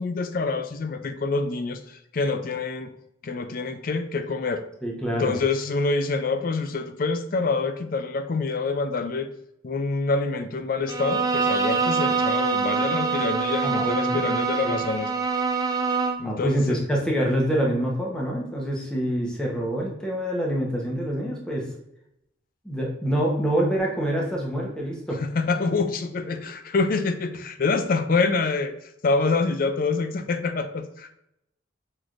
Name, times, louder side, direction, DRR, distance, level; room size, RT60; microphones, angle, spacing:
voice 1, 0.0-2.9 3.2-4.6 5.2-9.3 9.6-15.1 16.2-16.8 25.1-28.7 29.0-31.1, left 3 dB, 50° left, 9 dB, 0.4 m, -26 dB
voice 2, 4.8-5.3 13.6-14.2 14.6-14.8 16.2-21.7 22.6-25.2, equal, 5° left, -3 dB, 0.9 m, -26 dB
Bowed string instrument, 10.9-16.3, right 4 dB, 20° right, 0.4 m, -25 dB
5.9 x 3.3 x 2.5 m, 0.81 s
head